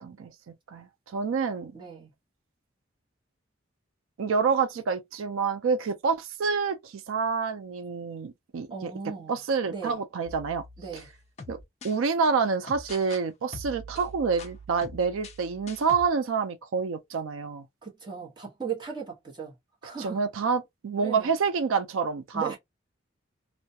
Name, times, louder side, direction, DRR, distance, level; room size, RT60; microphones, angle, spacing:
voice 1, 0.0-0.3 0.7-1.7 4.2-8.9 9.3-10.6 11.5-11.6 11.8-17.6 20.0-22.6, right 5 dB, 80° right, 0.4 m, -28 dB
voice 2, 1.7-2.1 8.7-9.4 9.7-10.0 10.8-11.1 17.8-19.5 19.8-20.2 21.0-21.3 22.3-22.6, right 6 dB, 20° right, 0.9 m, -37 dB
sound 1, 10.3-12.0 12.7-13.2 13.5-16.1, left 1 dB, 35° left, 0.3 m, -44 dB
2.2 x 2.1 x 2.6 m
head